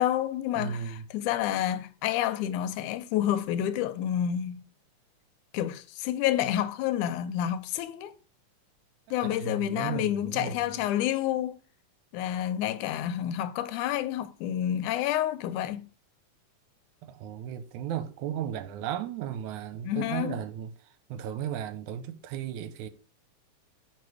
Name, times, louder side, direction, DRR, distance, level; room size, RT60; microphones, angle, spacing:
voice 1, 0.0-4.6 5.5-8.1 9.1-11.6 12.1-15.9 19.8-20.4, left 11 dB, 90° left, 2.1 m, -29 dB
voice 2, 0.6-1.1 9.2-10.6 17.0-22.9, right 9 dB, 80° right, 2.1 m, -35 dB
9.3 x 4.7 x 4.8 m
omnidirectional pair, 3.5 m